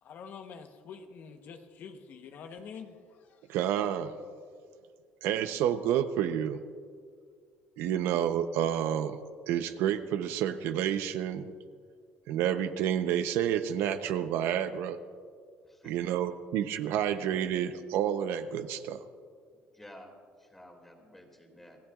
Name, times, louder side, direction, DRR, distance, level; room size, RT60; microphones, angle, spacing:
voice 1, 0.0-3.6, left 6 dB, 55° left, 6 dB, 1.1 m, -46 dB
voice 2, 3.5-4.1 5.2-6.6 7.8-9.2 9.5-11.5 12.3-15.0 15.8-19.0, right 10 dB, 75° right, 9 dB, 0.8 m, -29 dB
voice 3, 19.7-21.8, left 1 dB, 5° left, 2 dB, 2.6 m, -52 dB
27.0 x 16.0 x 2.5 m, 2.1 s
cardioid pair, 135°, 4 cm